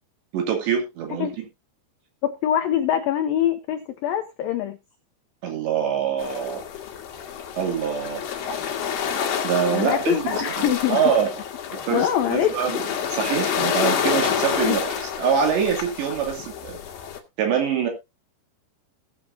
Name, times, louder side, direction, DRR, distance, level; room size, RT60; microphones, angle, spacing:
voice 1, 0.3-1.5 5.4-6.6 7.6-8.2 9.4-11.3 11.7-16.8 17.4-17.9, right 7 dB, 70° right, 2 dB, 4.7 m, -25 dB
voice 2, 2.2-4.8 9.7-11.0 11.9-12.6 14.6-14.8, left 10 dB, 90° left, 7 dB, 2.0 m, -24 dB
sound 1, 6.2-17.2, left 8 dB, 65° left, 3.0 m, -28 dB
19.0 x 7.0 x 2.8 m, 0.24 s
omnidirectional pair, 5.2 m